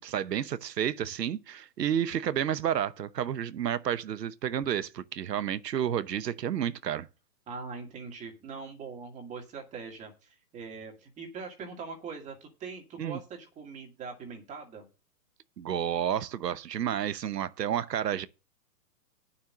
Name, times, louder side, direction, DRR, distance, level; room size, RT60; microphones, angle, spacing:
voice 1, 0.0-7.1 13.0-13.2 15.6-18.3, right 9 dB, 85° right, 1.0 m, -30 dB
voice 2, 7.5-14.9, right 5 dB, 15° right, 2.1 m, -42 dB
9.2 x 5.7 x 7.3 m
hypercardioid pair, 155°, 48 cm